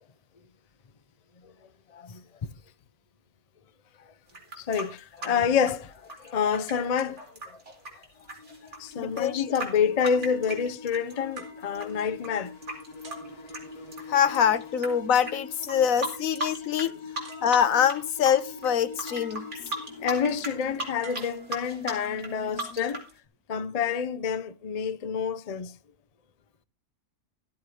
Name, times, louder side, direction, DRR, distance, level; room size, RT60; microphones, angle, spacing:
sound 1, 4.3-11.4 11.7-14.9 15.2-15.3 15.6-16.9 17.1-18.0 18.2-23.1, right 2 dB, 50° right, 4.5 m, -36 dB
voice 1, 4.6-7.2 8.8-12.5 20.0-23.0 23.5-25.7, left 7 dB, 35° left, 0.6 m, -28 dB
sound 2, 8.2-23.0, left 4 dB, 90° left, 2.5 m, -44 dB
voice 2, 9.0-9.4 14.1-17.0 17.4-19.4, left 8 dB, 70° left, 1.2 m, -24 dB
sound 3, 11.4-12.6 13.0-14.2 15.1-15.8 16.9-17.0 17.2-18.1 19.1-19.9 21.0-22.1 22.8-23.1, right 4 dB, 70° right, 3.0 m, -51 dB
14.0 x 8.1 x 4.9 m
omnidirectional pair, 1.5 m